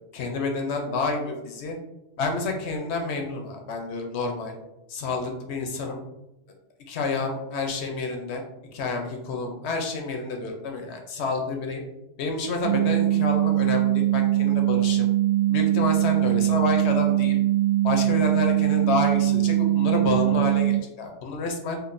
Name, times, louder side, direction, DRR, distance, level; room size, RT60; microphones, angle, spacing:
voice 1, 0.1-1.8 2.2-4.5 4.9-6.0 6.9-8.4 8.7-11.8 12.2-15.1 15.5-17.4 17.8-21.8, left 3 dB, 65° left, 3 dB, 0.9 m, -29 dB
sound 1, 12.6-20.8, right 15 dB, 75° right, 0.3 m, -22 dB
4.5 x 2.6 x 2.5 m, 0.91 s
omnidirectional pair, 1.3 m